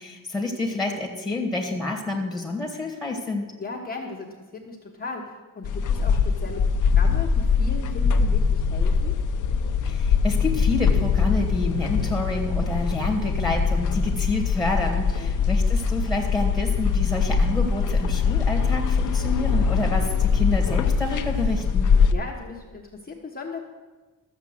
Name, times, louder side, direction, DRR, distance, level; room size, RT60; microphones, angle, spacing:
voice 1, 0.0-3.5 9.8-21.9, left 2 dB, ahead, 1 dB, 1.8 m, -28 dB
voice 2, 3.6-9.2 15.2-15.5 22.1-23.6, left 3 dB, 25° left, 0 dB, 1.1 m, -37 dB
sound 1, 5.6-22.1, left 5 dB, 60° left, 0.8 m, -22 dB
13.0 x 7.3 x 7.6 m, 1.3 s
wide cardioid pair, 175°, 34 cm